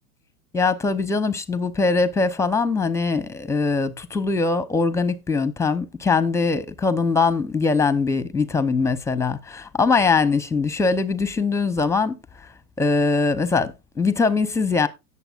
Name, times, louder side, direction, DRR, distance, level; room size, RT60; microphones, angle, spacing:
voice 1, 0.5-12.2 12.8-14.9, left 4 dB, 5° left, 0.8 m, -22 dB
17.0 x 6.9 x 2.5 m
hypercardioid pair, 105°, 49 cm